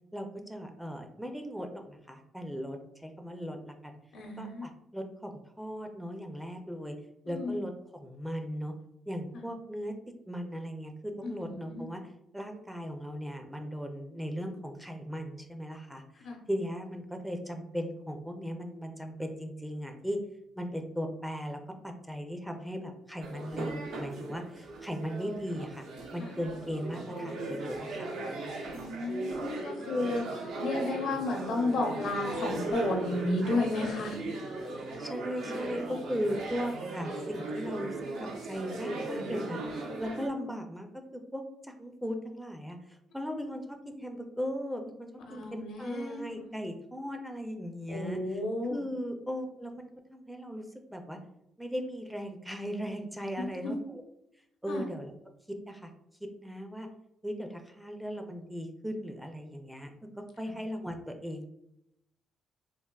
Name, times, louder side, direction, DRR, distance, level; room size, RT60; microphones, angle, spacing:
voice 1, 0.1-4.0 4.4-5.3 5.6-7.0 7.3-8.7 9.1-9.9 10.3-12.0 12.3-20.2 20.6-25.8 26.1-28.1 34.7-48.4 48.7-50.6 50.9-51.2 51.6-54.0 54.6-55.1 55.5-55.9 56.2-56.9 57.2-59.9 60.4-61.5, equal, 5° right, 4 dB, 0.4 m, -38 dB
voice 2, 4.1-4.7 7.3-7.6 9.3-9.4 11.2-11.8 16.2-16.4 26.2-26.3 28.7-34.2 45.3-46.4 47.9-48.8 53.4-53.7 54.7-54.9, left 2 dB, 75° left, 2 dB, 0.7 m, -33 dB
sound 1, 23.2-40.3, right 2 dB, 80° right, 0.6 m, -37 dB
3.4 x 2.4 x 2.3 m, 0.80 s
cardioid pair, 90°, 0 cm